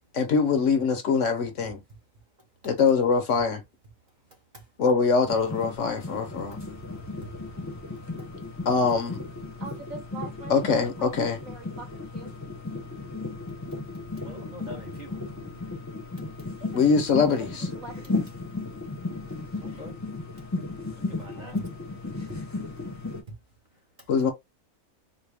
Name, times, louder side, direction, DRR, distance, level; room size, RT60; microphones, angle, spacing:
voice 1, 0.1-1.8 2.6-3.6 4.8-6.6 8.7-9.2 10.5-11.4 16.7-17.7 24.1-24.3, left 5 dB, 60° left, 1.0 m, -23 dB
sound 1, 5.3-23.2, left 3 dB, 15° left, 0.7 m, -35 dB
voice 2, 9.6-11.9 12.1-12.3 16.6-17.5 17.7-18.1 21.3-21.6, right 4 dB, 65° right, 1.6 m, -43 dB
voice 3, 14.2-15.2 15.5-15.6 19.6-20.0 20.8-21.7 22.3-22.4 23.3-23.4 24.0-24.1, right 1 dB, 35° right, 0.8 m, -44 dB
4.0 x 2.2 x 3.4 m
omnidirectional pair, 1.5 m